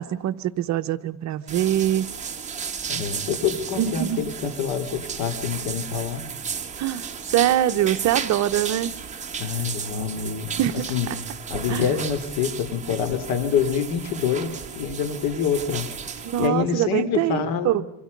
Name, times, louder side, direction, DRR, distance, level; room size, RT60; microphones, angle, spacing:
voice 1, 0.0-2.1 3.8-4.3 6.8-7.1 7.3-8.9 10.6-11.2 11.7-11.9 16.2-17.8, right 12 dB, 45° right, 10 dB, 1.0 m, -23 dB
sound 1, 1.5-16.5, right 6 dB, 20° right, 1.8 m, -34 dB
voice 2, 2.9-6.2 9.4-10.5 10.9-11.1 11.5-15.9 16.4-17.8, left 7 dB, 65° left, 10 dB, 3.0 m, -26 dB
27.0 x 26.0 x 5.3 m, 0.85 s
cardioid pair, 130°, 39 cm